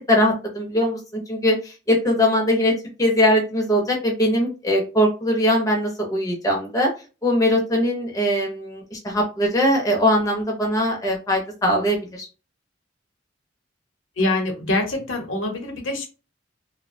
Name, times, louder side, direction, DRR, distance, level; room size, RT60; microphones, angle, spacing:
voice 1, 0.1-6.9 7.2-12.3, equal, 15° left, 0 dB, 0.5 m, -21 dB
voice 2, 14.2-16.1, left 2 dB, 75° left, 3 dB, 0.7 m, -24 dB
2.6 x 2.0 x 2.5 m, 0.32 s
head